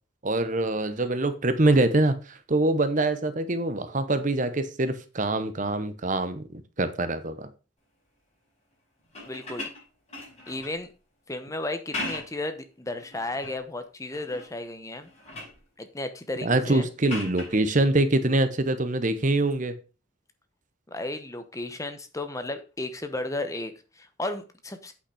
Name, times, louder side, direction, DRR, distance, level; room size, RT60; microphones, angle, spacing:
voice 1, 0.2-6.5 6.8-7.5 16.4-19.7, right 2 dB, 40° right, 11 dB, 0.8 m, -24 dB
sound 1, 9.0-10.8 11.7-12.5 13.0-13.6 14.1-14.6 14.9-15.6 17.1-17.6 19.4-19.5, left 2 dB, 30° left, 5.8 m, -38 dB
voice 2, 9.2-9.7 10.5-10.9 11.3-15.1 15.8-16.9 20.9-24.9, left 2 dB, 15° left, 9 dB, 0.9 m, -34 dB
8.8 x 5.7 x 4.9 m, 0.33 s
head